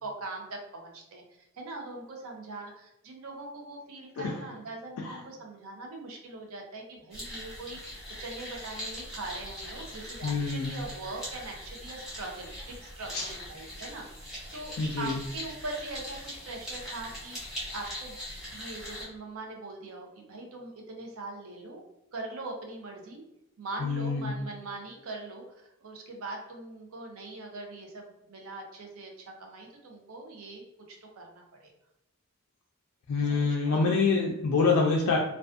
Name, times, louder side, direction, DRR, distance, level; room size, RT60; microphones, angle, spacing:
voice 1, 0.0-1.2 1.5-12.5 13.0-18.2 18.5-21.8 22.1-23.2 23.6-25.4 25.8-31.7 33.6-33.8, right 2 dB, 80° right, 1 dB, 0.6 m, -41 dB
sound 1, 7.1-19.0, equal, ahead, 0.8 m, -41 dB
voice 2, 10.2-10.7 13.1-13.3 14.8-15.2 23.8-24.3 33.1-35.2, left 4 dB, 85° left, 0 dB, 0.3 m, -26 dB
2.4 x 2.3 x 2.3 m, 0.87 s
head